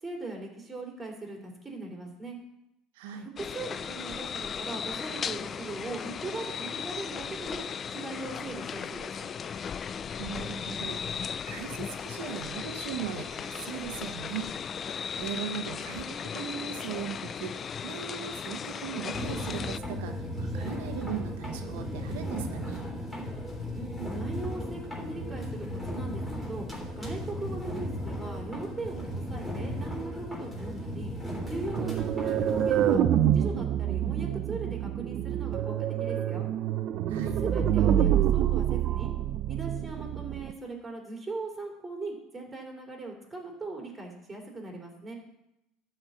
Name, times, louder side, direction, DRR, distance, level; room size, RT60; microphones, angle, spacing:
voice 1, 0.0-2.4 3.1-7.6 7.9-9.2 23.7-26.7 27.0-31.1 31.5-33.0 33.3-36.5 37.4-39.1 39.5-45.1, right 3 dB, 15° right, 0 dB, 3.2 m, -39 dB
voice 2, 2.9-3.3 10.2-14.5 15.2-22.9 37.1-37.4, right 9 dB, 90° right, 5 dB, 0.9 m, -38 dB
sound 1, 3.4-19.8, left 7 dB, 30° left, 0.3 m, -36 dB
sound 2, 19.1-33.0, left 1 dB, 5° left, 3.4 m, -36 dB
sound 3, 31.8-40.5, right 10 dB, 50° right, 0.6 m, -27 dB
11.5 x 4.4 x 8.1 m, 0.87 s
supercardioid pair, 120°, 0 cm